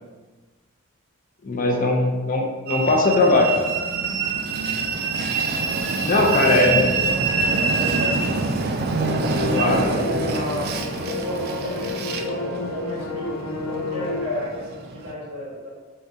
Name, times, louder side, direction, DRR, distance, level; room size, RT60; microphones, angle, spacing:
voice 1, 1.4-3.5 6.0-6.8 9.5-9.8, left 2 dB, 35° left, 1 dB, 0.5 m, -19 dB
Train, 2.7-15.1, right 4 dB, 45° right, 0.3 m, -25 dB
voice 2, 3.3-3.7 6.3-8.6 9.4-10.7 11.0-13.4 13.7-15.7, equal, 70° right, -5 dB, 1.4 m, -33 dB
sound 1, 8.9-14.3, left 3 dB, 85° left, 0.5 m, -30 dB
4.5 x 3.7 x 2.7 m, 1.3 s
head